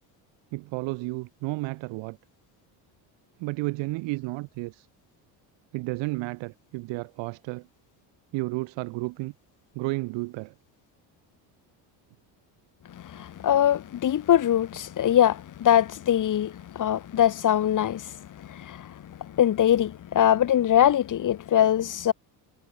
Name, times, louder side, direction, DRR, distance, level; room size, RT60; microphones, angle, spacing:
voice 1, 0.5-2.2 3.4-4.9 5.7-7.7 8.3-9.3 9.7-10.5, right 23 dB, 85° right, 5.2 m, -32 dB
voice 2, 12.9-22.1, left 10 dB, 45° left, 3.8 m, -23 dB
cardioid pair, 135°, 43 cm